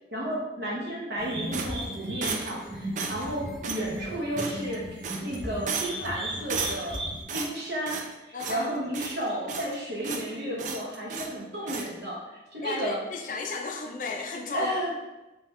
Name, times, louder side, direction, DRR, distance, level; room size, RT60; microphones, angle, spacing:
voice 1, 0.1-4.8 5.2-7.0 7.3-13.0 14.5-15.0, equal, 70° right, -4 dB, 1.0 m, -32 dB
sound 1, 1.2-7.2, equal, 25° right, 0.7 m, -37 dB
sound 2, 1.5-2.6 3.0-3.3 3.6-3.9 4.4-4.8 5.0-5.4 5.7-6.1 6.5-7.0 7.3-8.1 8.4-8.7 8.9-9.8 10.0-10.3 10.6-11.3 11.7-11.9, right 5 dB, 45° right, 0.3 m, -34 dB
voice 2, 8.3-8.7 12.6-14.7, left 4 dB, 45° left, 1 dB, 0.5 m, -34 dB
3.3 x 3.2 x 3.2 m, 1.0 s
head